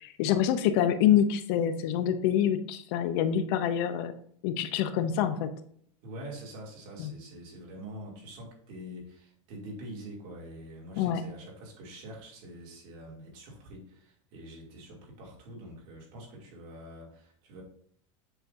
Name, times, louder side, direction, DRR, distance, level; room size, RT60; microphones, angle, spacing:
voice 1, 0.0-4.1 4.4-5.5 7.0-7.1 11.0-11.2, left 9 dB, 50° left, 10 dB, 0.6 m, -26 dB
voice 2, 6.0-17.6, right 1 dB, 45° right, -2 dB, 2.5 m, -45 dB
7.9 x 5.8 x 2.6 m, 0.62 s
supercardioid pair, 160°, 16 cm